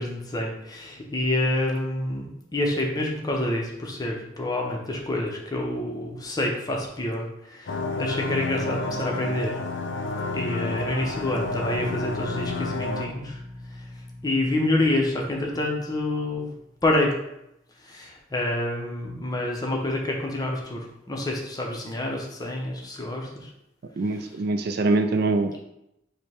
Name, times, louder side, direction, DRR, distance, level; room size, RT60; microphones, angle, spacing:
voice 1, 0.0-9.5 10.3-13.4 13.8-13.9 14.2-16.5 16.8-17.1 17.8-23.5, left 1 dB, 20° left, 0 dB, 0.7 m, -27 dB
sound 1, 7.7-13.1, left 3 dB, 70° left, 0.5 m, -30 dB
sound 2, 10.8-17.1, left 1 dB, 40° right, 1.0 m, -41 dB
voice 2, 24.0-25.6, right 2 dB, 55° right, 7 dB, 0.4 m, -24 dB
5.0 x 2.2 x 4.2 m, 0.83 s
head